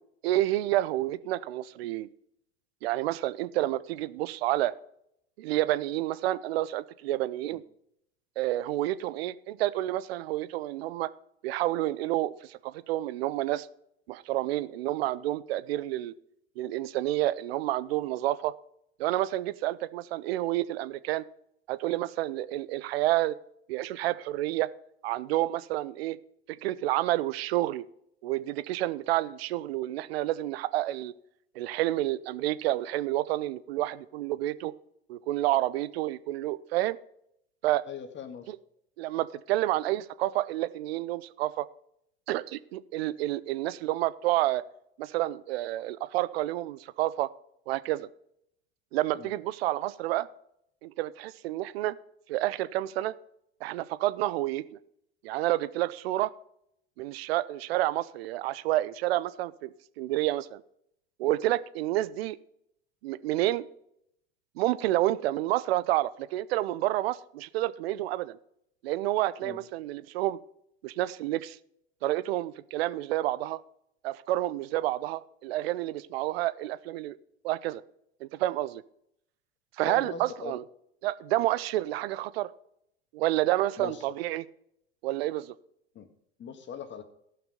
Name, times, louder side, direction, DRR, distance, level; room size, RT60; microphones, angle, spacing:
voice 1, 0.2-2.1 2.8-4.7 5.4-7.6 8.4-11.1 11.4-13.7 14.1-16.1 16.6-18.5 19.0-21.3 21.7-23.4 23.7-24.7 25.0-26.2 26.5-27.8 28.2-31.1 31.6-34.7 35.1-37.0 37.6-37.9 38.5-38.6 39.0-41.7 42.3-44.6 45.0-47.3 47.7-48.1 48.9-50.3 50.8-52.0 52.3-53.1 53.6-54.8 55.2-56.3 57.0-60.6 61.2-62.4 63.0-63.7 64.6-68.4 68.8-70.4 70.8-71.6 72.0-73.6 74.0-77.2 77.4-77.8 78.2-78.8 79.8-80.6 81.0-82.5 83.1-84.4 85.0-85.5, right 15 dB, 70° right, 17 dB, 0.7 m, -29 dB
voice 2, 37.9-38.5 49.1-49.3 69.4-69.6 79.8-80.6 83.8-84.0 86.0-86.1 86.4-87.0, left 6 dB, 35° left, 8 dB, 1.8 m, -40 dB
14.0 x 6.0 x 5.2 m, 0.73 s
hypercardioid pair, 80°, 32 cm